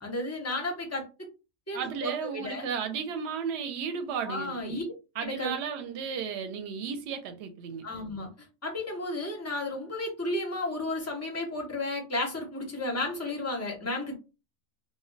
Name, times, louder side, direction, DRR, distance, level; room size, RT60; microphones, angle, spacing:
voice 1, 0.0-1.1 1.7-2.7 4.2-4.9 5.2-5.5 7.8-14.2, left 2 dB, 20° left, 0.4 m, -33 dB
voice 2, 1.7-4.8 5.2-7.8, right 6 dB, 60° right, 0.8 m, -34 dB
2.2 x 2.1 x 3.8 m
omnidirectional pair, 1.4 m